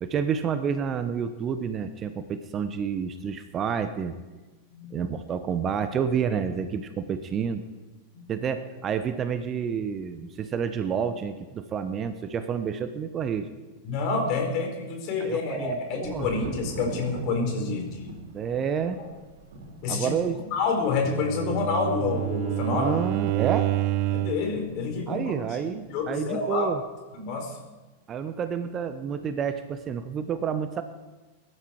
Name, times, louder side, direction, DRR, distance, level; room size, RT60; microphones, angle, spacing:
voice 1, 0.0-4.1 4.9-7.6 8.3-13.5 15.2-16.3 18.3-19.0 19.9-20.4 22.7-23.7 25.1-26.8 28.1-30.8, right 7 dB, 25° right, 10 dB, 1.0 m, -29 dB
voice 2, 13.8-18.1 19.8-20.1 20.5-23.0 24.1-25.3 25.9-26.7 27.1-27.6, left 4 dB, 40° left, 3 dB, 4.4 m, -28 dB
Thunder, 16.0-25.7 25.9-26.7, right 2 dB, 60° right, 4.2 m, -43 dB
Bowed string instrument, 20.9-24.5, right 15 dB, 45° right, 0.6 m, -28 dB
22.0 x 12.5 x 4.7 m, 1.2 s
figure-of-eight pair, 90°, 0 cm